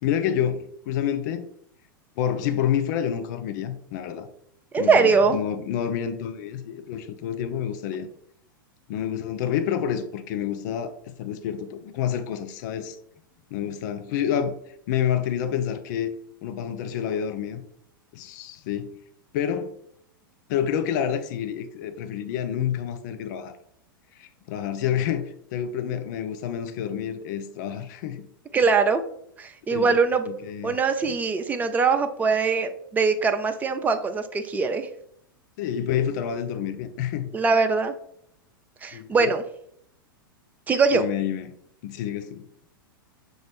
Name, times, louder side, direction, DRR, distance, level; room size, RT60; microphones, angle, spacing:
voice 1, 0.0-1.5 2.2-4.3 4.8-8.1 8.9-13.0 13.5-14.5 14.9-16.1 16.4-17.6 18.1-18.9 19.3-19.7 20.5-23.5 24.2-28.2 29.7-30.0 30.2-30.7 31.0-31.1 35.6-37.3 38.9-39.3 40.9-41.5 41.8-42.4, left 9 dB, 55° left, 0.5 m, -28 dB
voice 2, 4.7-5.4 28.5-29.0 29.4-30.2 30.6-34.9 37.3-37.9 38.8-39.4 40.7-41.0, right 4 dB, 15° right, 0.4 m, -22 dB
6.1 x 2.5 x 3.3 m
hypercardioid pair, 100°, 12 cm